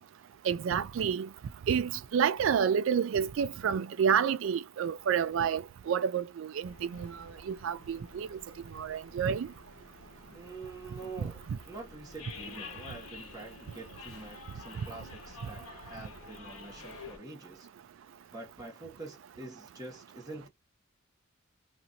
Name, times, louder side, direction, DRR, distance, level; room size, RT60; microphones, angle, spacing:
voice 1, 0.5-1.3 1.7-7.2 7.5-8.4 8.8-9.5 11.2-11.3, right 7 dB, 65° right, 0.3 m, -29 dB
sound 1, 6.6-17.2, left 4 dB, 85° left, 1.0 m, -49 dB
voice 2, 10.3-17.7 18.3-20.5, right 2 dB, 15° right, 1.4 m, -46 dB
2.9 x 2.5 x 2.6 m
head